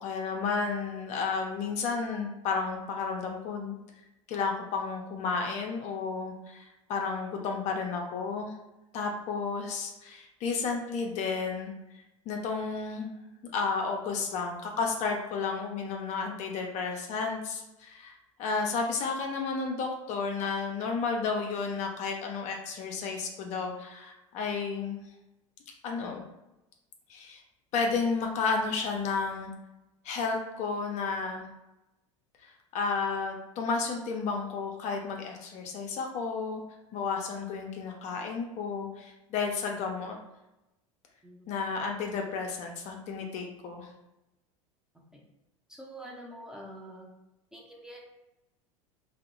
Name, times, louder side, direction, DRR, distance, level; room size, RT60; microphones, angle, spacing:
voice 1, 0.0-3.7 4.3-6.6 6.9-8.5 8.9-11.7 12.3-13.1 13.5-25.0 25.8-26.2 27.1-27.4 27.7-29.5 30.0-31.5 32.4-36.6 36.9-40.2 41.5-43.9, left 4 dB, 45° left, 1 dB, 0.4 m, -32 dB
voice 2, 45.8-47.1 47.5-48.0, right 1 dB, 5° right, -2 dB, 0.6 m, -45 dB
2.6 x 2.0 x 2.5 m, 0.96 s
hypercardioid pair, 80°, 17 cm